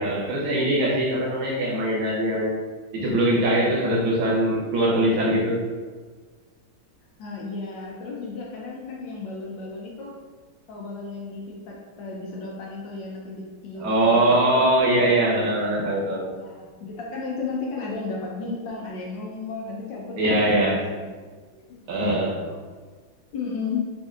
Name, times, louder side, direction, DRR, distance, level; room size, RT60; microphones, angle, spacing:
voice 1, 0.0-2.6 2.9-5.6 13.8-16.3 20.2-20.8 21.9-22.4, right 1 dB, 75° right, -5 dB, 1.6 m, -22 dB
voice 2, 7.2-10.2 10.7-15.1 16.4-21.1 21.5-22.6 23.3-23.9, left 4 dB, 70° left, -3 dB, 1.1 m, -34 dB
4.2 x 2.6 x 2.3 m, 1.5 s
omnidirectional pair, 2.3 m